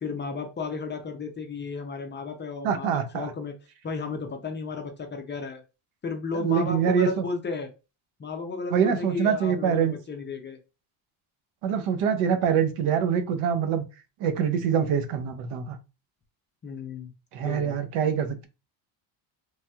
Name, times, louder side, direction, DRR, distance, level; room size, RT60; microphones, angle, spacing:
voice 1, 0.0-3.5 3.8-5.6 6.0-7.7 8.2-10.6 16.6-17.1 17.4-17.8, left 4 dB, 25° left, 0.4 m, -33 dB
voice 2, 2.6-3.3 6.4-7.1 8.7-9.9 11.6-13.8 14.2-15.8 17.3-18.5, right 7 dB, 80° right, 0.7 m, -24 dB
3.1 x 2.7 x 2.3 m
cardioid pair, 130°, 50 cm